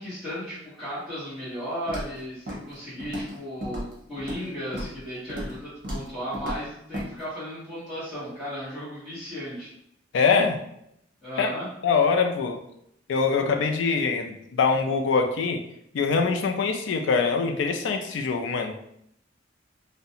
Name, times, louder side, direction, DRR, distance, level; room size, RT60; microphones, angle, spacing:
voice 1, 0.0-9.7 11.2-11.7, equal, ahead, -17 dB, 1.0 m, -35 dB
Walk footsteps, 1.9-2.2 2.5-2.7 3.0-3.4 3.6-4.4 4.7-5.0 5.3-5.6 5.8-6.1 6.3-6.6 6.9-7.1, equal, 50° right, 0.8 m, -34 dB
voice 2, 10.1-10.6 11.4-11.5 11.8-12.6 13.1-15.6 15.9-18.8, left 5 dB, 80° left, 4 dB, 0.4 m, -23 dB
2.4 x 2.1 x 2.7 m, 0.74 s
head